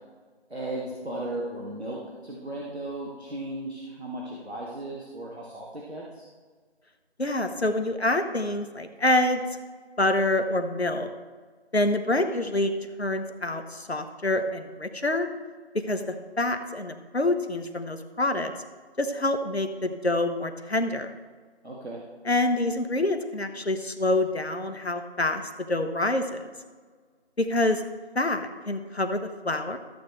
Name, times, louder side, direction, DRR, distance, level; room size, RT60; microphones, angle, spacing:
voice 1, 0.5-6.3 21.6-22.0, right 1 dB, 70° right, -5 dB, 2.2 m, -36 dB
voice 2, 7.2-9.4 10.0-11.1 11.7-12.7 13.0-15.3 15.7-18.5 19.0-21.2 22.2-25.4 25.7-26.4 27.4-27.8 28.1-29.8, left 2 dB, 70° left, 7 dB, 1.1 m, -26 dB
14.0 x 8.4 x 3.3 m, 1.5 s
figure-of-eight pair, 175°, 33 cm